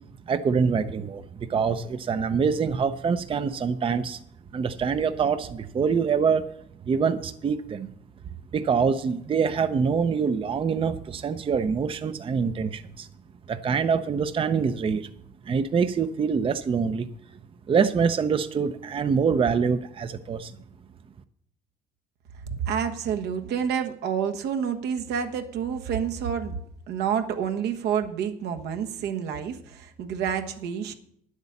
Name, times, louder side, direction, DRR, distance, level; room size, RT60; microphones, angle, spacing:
voice 1, 0.3-4.2 4.5-6.5 6.9-7.9 8.5-13.1 13.5-15.1 15.5-17.1 17.7-20.5, right 6 dB, 30° right, 11 dB, 0.6 m, -25 dB
voice 2, 22.5-26.6 26.9-30.9, right 7 dB, 80° right, 6 dB, 1.3 m, -28 dB
9.9 x 8.1 x 7.1 m, 0.70 s
cardioid pair, 110°, 17 cm